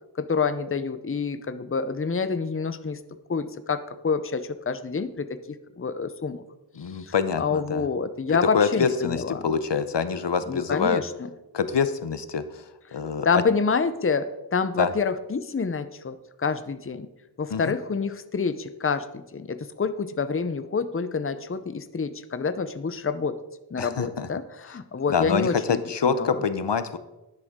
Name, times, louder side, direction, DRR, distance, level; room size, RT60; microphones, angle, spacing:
voice 1, 0.2-3.0 3.3-5.4 5.8-6.4 7.0-9.5 10.5-11.3 13.2-17.1 17.4-23.4 23.7-26.4, left 5 dB, 30° left, 11 dB, 0.6 m, -27 dB
voice 2, 6.8-7.8 8.5-11.0 11.5-12.4 12.9-13.3 14.8-14.9 17.5-17.8 23.8-24.3 25.1-27.0, left 6 dB, 80° left, 12 dB, 0.7 m, -25 dB
11.0 x 10.5 x 3.7 m, 0.99 s
wide cardioid pair, 60°, 42 cm